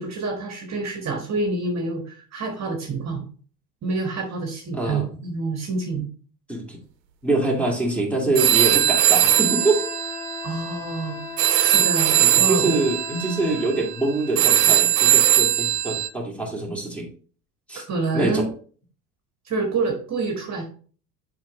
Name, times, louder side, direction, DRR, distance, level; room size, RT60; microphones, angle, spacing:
voice 1, 0.0-3.2 3.8-6.1 10.4-11.3 11.6-12.8 17.8-18.5 19.4-20.6, right 3 dB, 35° right, 2 dB, 1.4 m, -27 dB
voice 2, 4.7-5.0 6.5-6.8 7.2-9.8 12.2-17.1 17.7-17.8 18.1-18.5, right 2 dB, 5° left, -1 dB, 2.2 m, -24 dB
sound 1, 8.4-16.1, right 12 dB, 80° right, 0.9 m, -20 dB
Wind instrument woodwind instrument, 9.3-13.8, left 6 dB, 75° left, 1.1 m, -37 dB
7.2 x 4.7 x 3.1 m, 0.43 s
hypercardioid pair, 70°, 49 cm